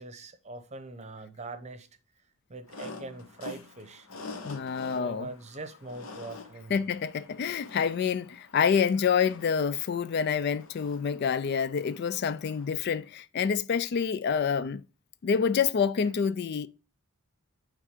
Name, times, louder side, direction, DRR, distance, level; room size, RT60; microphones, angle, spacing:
voice 1, 0.0-1.9 2.5-4.1 4.8-6.9, right 3 dB, 30° right, 0.8 m, -42 dB
sound 1, 2.7-13.0, left 3 dB, 70° left, 1.1 m, -47 dB
voice 2, 4.4-5.3 6.7-14.8 15.2-16.7, left 6 dB, 50° left, 0.3 m, -27 dB
8.8 x 3.6 x 5.1 m
head